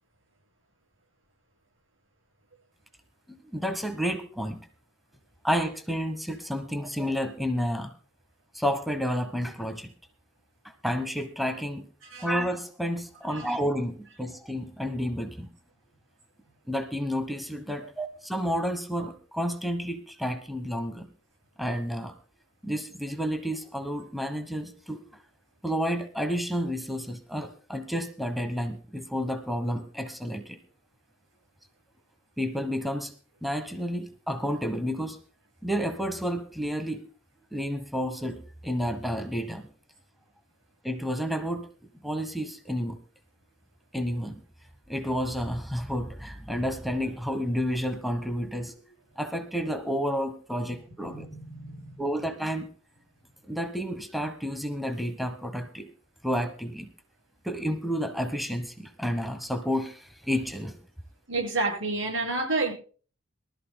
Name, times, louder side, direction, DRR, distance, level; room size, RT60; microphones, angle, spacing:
voice 1, 3.3-4.6 5.4-7.9 8.5-9.9 10.8-11.9 12.2-15.5 16.7-21.1 21.6-22.1 22.6-25.0 25.6-30.6 32.4-33.1 33.4-35.2 35.6-37.0 37.5-39.7 40.8-41.7 42.0-43.0 43.9-44.4 44.9-48.8 49.2-51.3 52.0-52.7 53.5-55.9 56.2-56.9 57.4-60.8, equal, ahead, 7 dB, 1.1 m, -30 dB
voice 2, 51.0-51.9 61.3-62.7, right 3 dB, 75° right, 2 dB, 6.7 m, -30 dB
23.0 x 13.5 x 2.2 m, 0.41 s
head